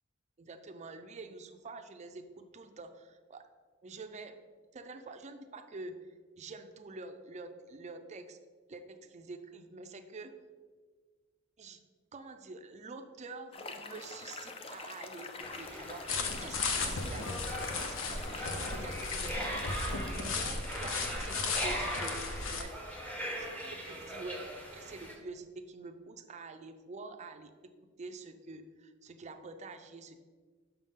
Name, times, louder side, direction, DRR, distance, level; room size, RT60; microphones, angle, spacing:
voice 1, 0.4-3.4 3.8-4.4 4.7-8.4 8.7-10.3 11.6-11.8 12.1-22.2 22.5-23.0 23.4-24.4 24.7-27.5 28.0-30.2, right 3 dB, 35° right, 7 dB, 0.4 m, -47 dB
sound 1, 13.5-20.1, left 3 dB, 30° left, 0.4 m, -45 dB
sound 2, 15.4-25.1, equal, 5° left, 0.9 m, -40 dB
sound 3, 16.1-22.6, left 4 dB, 70° left, 0.7 m, -36 dB
5.8 x 5.5 x 3.6 m, 1.5 s
head